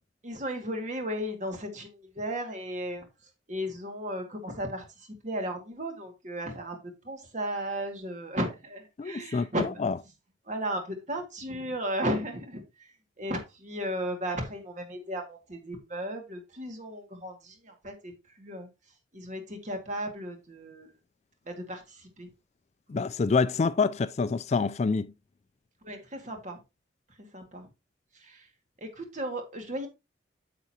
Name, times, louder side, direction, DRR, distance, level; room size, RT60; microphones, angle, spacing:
voice 1, 0.2-3.1 3.5-9.8 10.5-18.7 19.1-20.9 21.5-22.3 25.8-26.6 27.3-27.7 28.1-28.5 28.8-29.9, equal, 40° right, 2.1 m, -35 dB
voice 2, 9.0-9.5 9.8-9.9 22.9-25.1, left 4 dB, 40° left, 0.3 m, -26 dB
9.3 x 6.7 x 2.9 m
head